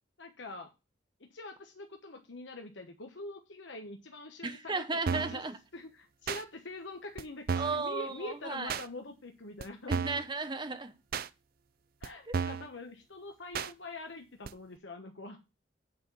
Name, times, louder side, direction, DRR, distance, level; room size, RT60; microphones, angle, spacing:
voice 1, 0.2-0.7 1.2-4.8 5.1-5.4 5.7-10.0 12.0-15.4, left 2 dB, 65° left, 1.1 m, -44 dB
voice 2, 4.4-5.6 7.5-8.8 9.9-10.9 12.3-12.4, right 3 dB, 25° right, 0.8 m, -35 dB
sound 1, 5.1-5.4 6.3-6.4 7.2-7.3 7.5-7.8 8.7-8.9 9.6-9.7 9.9-10.3 11.1-11.3 12.0-12.1 12.3-12.7 13.5-13.7 14.5-14.6, right 6 dB, 50° right, 0.4 m, -33 dB
8.6 x 4.3 x 7.1 m
head